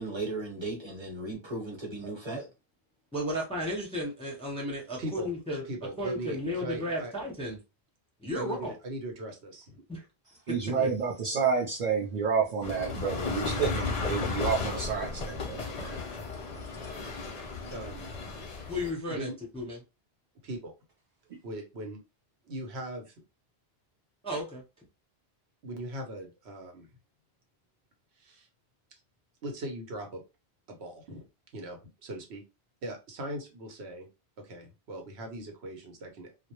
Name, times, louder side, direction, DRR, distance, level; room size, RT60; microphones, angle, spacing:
voice 1, 0.0-2.5, right 2 dB, 30° right, 0.9 m, -36 dB
voice 2, 3.1-5.6 6.0-7.6 8.2-8.8 9.9-10.0 10.5-10.6 18.7-19.8 24.2-24.6, left 1 dB, 5° left, 0.6 m, -34 dB
voice 3, 5.0-5.3 5.7-7.1 8.3-9.8 10.7-11.1 17.7-18.1 19.1-19.4 20.4-20.7 21.4-22.0 22.4-23.1 25.6-26.9 28.2-28.5 29.4-30.2 30.7-31.3 31.5-32.4 32.8-34.1 34.4-36.5, right 1 dB, 90° right, 1.0 m, -40 dB
voice 4, 10.5-16.0, right 6 dB, 50° right, 0.6 m, -30 dB
sound 1, 12.6-18.9, left 4 dB, 50° left, 0.5 m, -34 dB
2.2 x 2.0 x 2.9 m
omnidirectional pair, 1.1 m